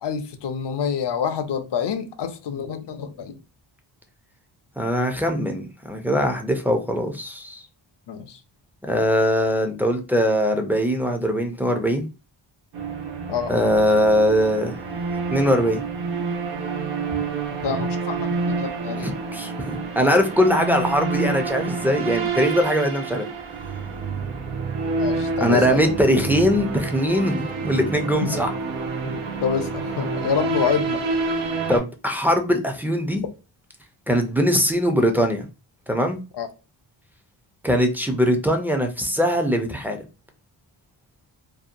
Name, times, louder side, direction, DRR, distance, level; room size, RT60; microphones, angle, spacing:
voice 1, 0.0-3.4 8.1-8.4 13.3-13.5 17.1-17.2 17.6-19.1 25.0-25.9 28.2-28.4 29.0-31.0 36.3-36.5, left 7 dB, 60° left, 0.6 m, -27 dB
voice 2, 4.8-7.6 8.8-12.1 13.5-14.7 15.3-15.8 19.0-23.2 25.4-28.5 31.7-33.2 34.1-35.5 35.9-36.2 37.6-40.0, equal, 5° right, 0.4 m, -21 dB
sound 1, 12.7-31.8, right 4 dB, 90° right, 0.7 m, -28 dB
2.7 x 2.2 x 2.5 m
cardioid pair, 70°, 48 cm